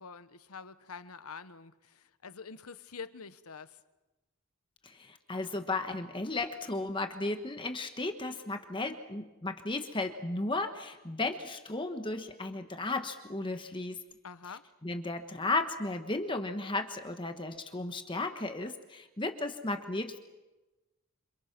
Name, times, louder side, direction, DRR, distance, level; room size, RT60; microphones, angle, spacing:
voice 1, 0.0-3.8 14.2-14.6, left 5 dB, 85° left, 13 dB, 1.2 m, -46 dB
voice 2, 4.8-14.0 14.8-20.2, left 2 dB, 20° left, 6 dB, 1.3 m, -34 dB
28.0 x 26.5 x 6.1 m, 1.1 s
head